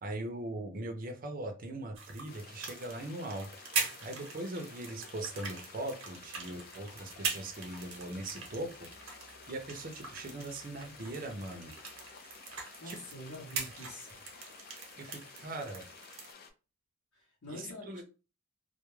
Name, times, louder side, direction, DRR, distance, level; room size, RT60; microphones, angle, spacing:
voice 1, 0.0-8.9 9.3-11.7 12.8-13.0 15.0-15.8 17.5-18.0, right 1 dB, 45° right, 4 dB, 0.5 m, -40 dB
sound 1, 2.0-16.3, right 4 dB, 85° right, 0.7 m, -42 dB
sound 2, 2.3-16.5, left 5 dB, 45° left, 0.4 m, -53 dB
voice 2, 12.8-14.2 17.1-18.0, left 1 dB, 90° left, -4 dB, 0.8 m, -46 dB
2.2 x 2.0 x 3.0 m, 0.32 s
head